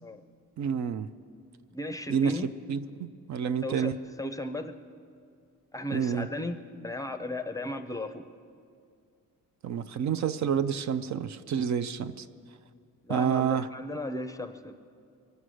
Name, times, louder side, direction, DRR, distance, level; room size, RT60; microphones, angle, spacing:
voice 1, 0.6-1.1 2.1-2.4 2.7-4.0 5.9-6.3 9.6-12.3 13.1-13.7, right 7 dB, 60° right, 12 dB, 0.5 m, -29 dB
voice 2, 1.7-2.5 3.6-3.9 4.2-4.7 5.7-6.6 6.8-8.3 13.1-14.7, left 1 dB, 10° left, 8 dB, 0.5 m, -35 dB
23.5 x 8.1 x 6.3 m, 2.3 s
cardioid pair, 140°, 33 cm